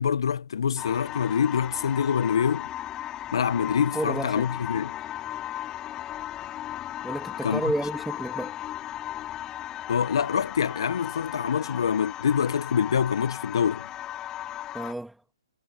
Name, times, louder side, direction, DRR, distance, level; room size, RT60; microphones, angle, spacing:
voice 1, 0.0-2.7 3.3-4.9 7.4-7.6 9.9-13.9, left 7 dB, 60° left, 1.6 m, -25 dB
sound 1, 0.8-14.9, left 12 dB, 20° left, 3.0 m, -36 dB
voice 2, 3.9-4.5 7.0-8.6 14.7-15.2, right 1 dB, ahead, 3.0 m, -31 dB
figure-of-eight pair, 135°, 3 cm